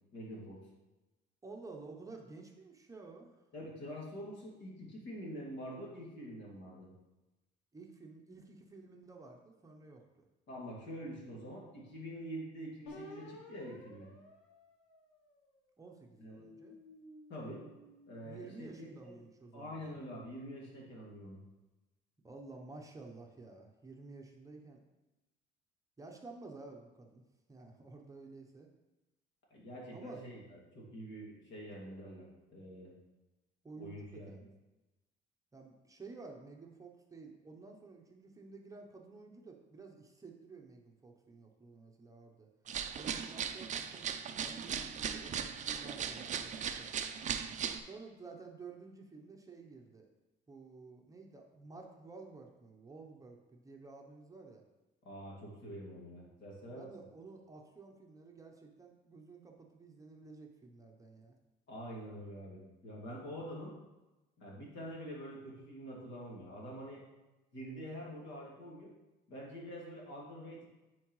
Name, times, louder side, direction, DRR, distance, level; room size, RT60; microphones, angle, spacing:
voice 1, 0.1-0.6 3.5-6.9 10.5-14.1 16.2-16.4 17.3-17.6 18.1-19.2 19.5-21.4 29.5-32.9 33.8-34.4 55.0-56.9 61.7-63.7 64.4-67.0 67.5-68.9 69.3-70.7, equal, 60° left, -4 dB, 2.5 m, -46 dB
voice 2, 1.4-3.4 7.7-10.3 15.8-16.8 18.2-19.9 22.2-24.8 26.0-28.7 29.9-30.2 33.6-34.5 35.5-42.5 42.9-46.9 47.8-50.1 50.5-54.6 56.7-61.4, right 3 dB, 15° right, 1 dB, 0.8 m, -52 dB
sound 1, 12.9-15.5 16.1-18.6, left 1 dB, 80° left, 1.3 m, -54 dB
sound 2, 42.7-47.8, right 7 dB, 35° right, 0.5 m, -38 dB
9.6 x 4.6 x 3.1 m, 1.0 s
cardioid pair, 125°, 21 cm